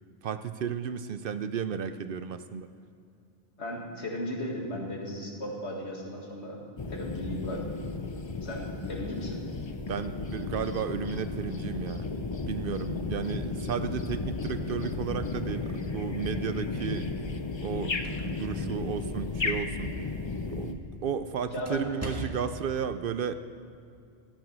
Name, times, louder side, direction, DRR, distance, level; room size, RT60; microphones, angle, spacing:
voice 1, 0.2-2.7 9.9-12.1 12.5-17.1 17.5-19.9 20.5-23.3, right 7 dB, 60° right, 11 dB, 0.7 m, -33 dB
voice 2, 3.6-6.6 6.9-7.8 8.4-9.4 21.5-21.9, equal, 85° left, -1 dB, 2.2 m, -36 dB
sound 1, 6.8-20.7, left 3 dB, 30° left, 0.6 m, -34 dB
sound 2, 17.5-22.7, right 1 dB, 15° right, 1.5 m, -44 dB
13.0 x 9.2 x 6.1 m, 2.5 s
omnidirectional pair, 1.1 m